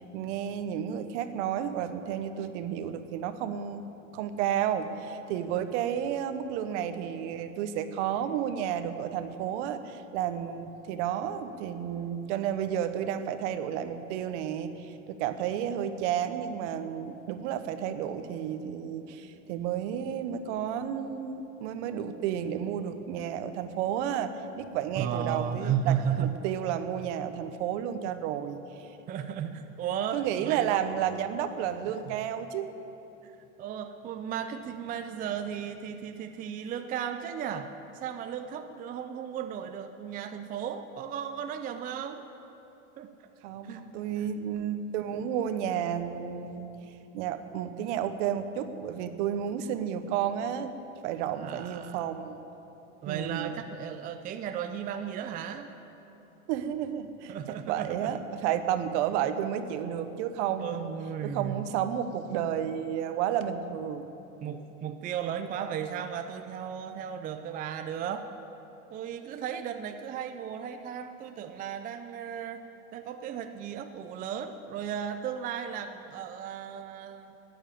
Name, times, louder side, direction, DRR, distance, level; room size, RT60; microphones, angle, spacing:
voice 1, 0.0-28.6 30.1-32.7 43.4-46.7 47.1-50.7 51.0-52.4 53.1-53.5 56.5-57.3 57.6-60.9 61.2-64.0, right 9 dB, 60° right, 10 dB, 1.1 m, -32 dB
voice 2, 25.0-26.4 29.1-30.9 32.0-32.3 33.2-42.2 43.0-43.1 43.6-43.9 44.2-44.3 51.4-52.0 53.0-55.7 57.3-58.2 60.6-61.7 64.4-68.3 68.9-72.6 72.9-77.4, right 8 dB, 20° right, 7 dB, 0.5 m, -35 dB
12.5 x 10.0 x 8.5 m, 3.0 s
supercardioid pair, 130°, 39 cm